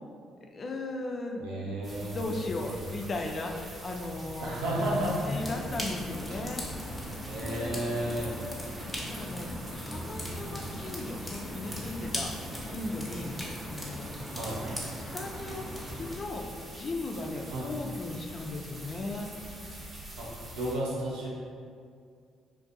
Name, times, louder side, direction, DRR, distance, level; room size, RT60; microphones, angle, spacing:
voice 1, 0.5-6.6 7.4-7.8 8.8-13.3 13.7-14.1 14.6-14.7 14.9-16.4 16.7-19.3, left 2 dB, 45° left, 2 dB, 0.3 m, -37 dB
voice 2, 1.4-2.9 4.4-5.5 7.2-8.3 14.2-14.6 17.4-17.7 20.2-21.3, right 1 dB, 80° right, -5 dB, 0.5 m, -33 dB
sound 1, 1.8-20.8, right 1 dB, 35° right, 0.7 m, -45 dB
sound 2, 4.6-16.2, equal, ahead, 0.7 m, -39 dB
2.5 x 2.2 x 2.5 m, 2.2 s
hypercardioid pair, 50°, 0 cm